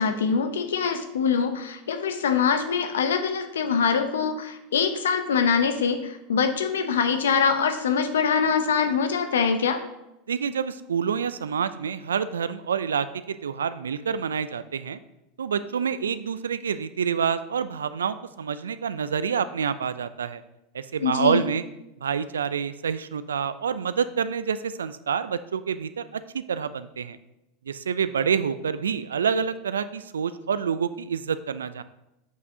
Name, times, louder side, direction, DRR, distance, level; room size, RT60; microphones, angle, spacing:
voice 1, 0.0-9.8 21.0-21.5, left 6 dB, 80° left, 8 dB, 0.7 m, -24 dB
voice 2, 10.3-15.0 15.4-20.4 20.7-21.6 22.0-27.2 27.7-31.8, right 7 dB, 85° right, 14 dB, 0.3 m, -27 dB
7.3 x 5.8 x 2.7 m, 0.90 s
hypercardioid pair, 90°, 0 cm